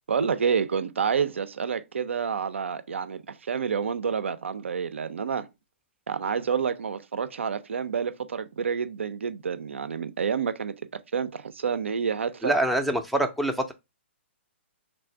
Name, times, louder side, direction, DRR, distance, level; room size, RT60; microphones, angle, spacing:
voice 1, 0.1-5.5 6.1-10.7 11.1-12.5, right 6 dB, 80° right, 0.4 m, -28 dB
voice 2, 12.4-13.7, right 1 dB, ahead, 0.4 m, -25 dB
3.2 x 2.5 x 4.2 m
hypercardioid pair, 125°, 7 cm